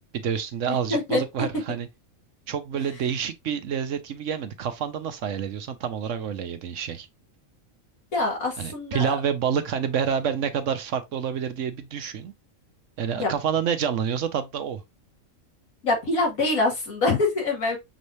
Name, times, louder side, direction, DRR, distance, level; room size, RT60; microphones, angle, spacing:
voice 1, 0.1-1.9 2.5-7.1 8.6-12.3 13.0-14.8, right 7 dB, 65° right, 1.0 m, -28 dB
voice 2, 0.7-1.5 8.1-9.1 13.2-13.3 15.8-17.8, left 2 dB, 85° left, 2.5 m, -25 dB
6.2 x 3.2 x 2.6 m
omnidirectional pair, 1.4 m